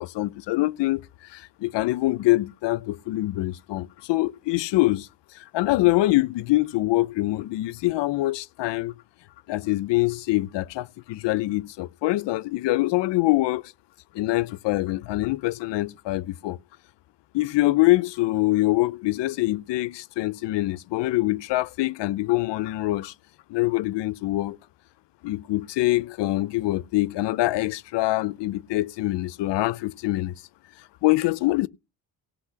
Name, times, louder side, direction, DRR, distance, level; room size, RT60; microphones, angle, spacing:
voice 1, 0.0-5.1 5.3-8.9 9.5-13.7 14.1-16.6 17.3-23.1 23.5-24.6 25.2-30.3 31.0-31.7, left 18 dB, 90° left, 0.7 m, -24 dB
18.0 x 6.0 x 5.7 m
cardioid pair, 155°, 41 cm